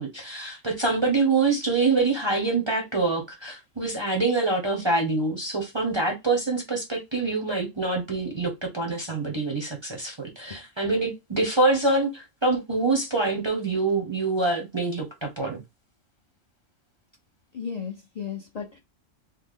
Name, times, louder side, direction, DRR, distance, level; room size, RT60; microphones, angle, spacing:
voice 1, 0.0-15.6, right 3 dB, 30° right, 0.6 m, -25 dB
voice 2, 17.5-18.8, left 7 dB, 50° left, 0.5 m, -34 dB
3.1 x 2.0 x 3.5 m
omnidirectional pair, 1.3 m